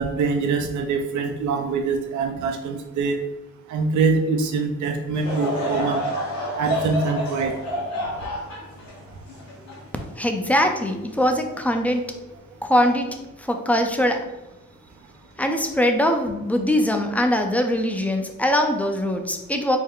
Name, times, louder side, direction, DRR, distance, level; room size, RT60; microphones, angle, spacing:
voice 1, 0.0-3.2 3.7-6.0 6.6-7.5, right 4 dB, 75° right, 3 dB, 0.8 m, -24 dB
Laughter / Crowd, 5.1-10.6 11.2-11.3 12.1-12.3, equal, 65° left, 1.4 m, -29 dB
voice 2, 10.2-12.1 12.6-14.3 15.4-19.8, left 1 dB, 5° left, 5 dB, 0.5 m, -22 dB
4.6 x 2.1 x 3.7 m, 0.97 s
cardioid pair, 90°, 30 cm